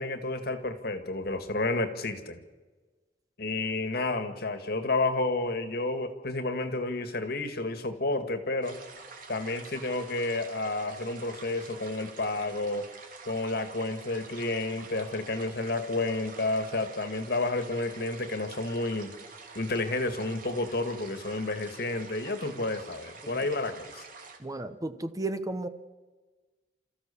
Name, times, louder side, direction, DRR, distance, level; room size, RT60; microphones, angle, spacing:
voice 1, 0.0-2.4 3.4-8.8 9.3-12.9 13.3-19.1 19.5-24.0, left 2 dB, 60° left, 9 dB, 1.9 m, -31 dB
sound 1, 8.6-24.4, right 4 dB, 55° right, 2.8 m, -47 dB
voice 2, 24.4-25.7, right 2 dB, 20° right, 10 dB, 1.0 m, -34 dB
29.5 x 14.5 x 7.1 m, 1.3 s
head